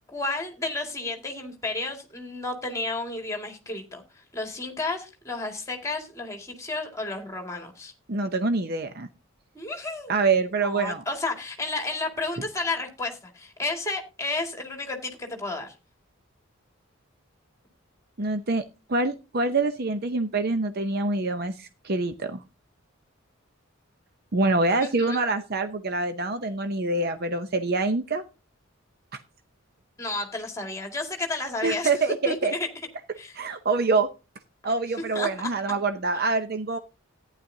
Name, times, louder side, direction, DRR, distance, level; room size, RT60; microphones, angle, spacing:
voice 1, 0.1-4.0 4.3-7.9 9.5-10.1 10.6-15.7 24.8-25.2 30.0-31.9 32.3-32.7 33.2-33.4 35.1-35.5, left 2 dB, 15° left, 3 dB, 2.1 m, -32 dB
voice 2, 8.1-9.1 10.1-11.0 18.2-22.4 24.3-28.2 29.1-29.2 31.6-32.5 33.3-34.1 34.6-36.8, right 3 dB, 50° right, 8 dB, 0.7 m, -25 dB
14.0 x 10.0 x 2.7 m, 0.29 s
head